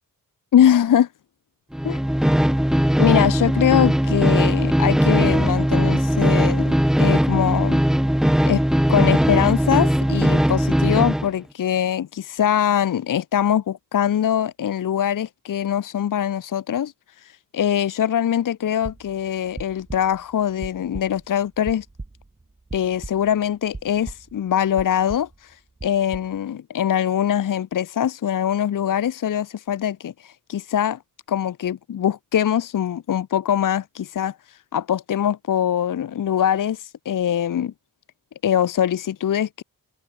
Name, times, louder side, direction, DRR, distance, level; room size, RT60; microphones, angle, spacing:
voice 1, 0.5-1.1 1.8-2.0 3.0-7.8 8.5-8.6 8.9-16.9 17.2-21.9 22.7-25.6 25.8-31.0 31.3-37.7 38.4-39.6, left 9 dB, 65° left, 0.6 m, -22 dB
sound 1, 1.7-11.3, equal, ahead, 0.4 m, -19 dB
sound 2, 18.8-23.4 23.7-24.5 24.7-25.4 25.8-26.4, right 2 dB, 20° right, 1.3 m, -38 dB
wide cardioid pair, 105°, 34 cm